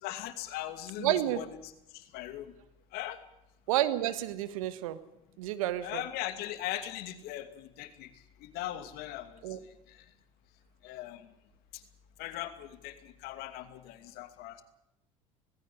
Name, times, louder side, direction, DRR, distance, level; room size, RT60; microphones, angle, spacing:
voice 1, 0.0-2.5 2.9-3.2 5.8-8.1 8.4-9.4 9.9-10.0 10.8-11.3 11.7-11.8 12.2-14.6, left 13 dB, 65° left, 10 dB, 2.5 m, -40 dB
voice 2, 1.0-1.4 3.7-5.0 5.4-6.0 9.4-9.6, right 13 dB, 80° right, 13 dB, 1.7 m, -30 dB
19.0 x 16.0 x 9.9 m, 0.86 s
hypercardioid pair, 80°, 17 cm